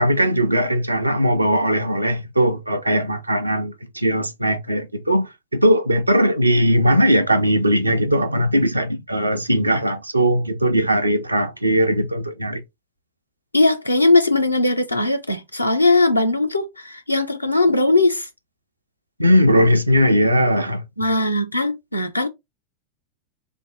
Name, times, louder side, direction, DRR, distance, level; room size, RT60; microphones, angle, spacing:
voice 1, 0.0-12.6 19.2-20.8, equal, 85° right, 0.5 m, -19 dB
voice 2, 13.5-18.3 21.0-22.3, left 2 dB, 85° left, 0.6 m, -19 dB
3.4 x 2.0 x 3.8 m
figure-of-eight pair, 90°, 0 cm